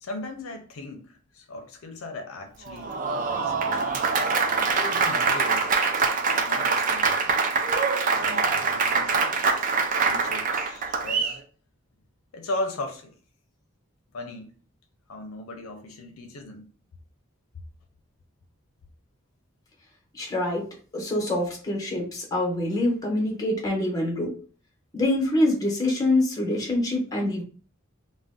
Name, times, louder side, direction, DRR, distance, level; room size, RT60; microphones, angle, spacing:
voice 1, 0.0-3.0 3.2-3.8 4.7-5.7 6.3-7.2 8.1-9.7 10.0-11.4 12.3-13.1 14.1-14.5 15.1-16.7, left 2 dB, 80° left, 0.5 m, -37 dB
Applause, 2.7-11.4, right 4 dB, 40° right, 0.3 m, -24 dB
voice 2, 20.1-20.6 20.9-24.3 24.9-27.4, left 1 dB, 15° left, 0.8 m, -25 dB
2.5 x 2.1 x 3.6 m
head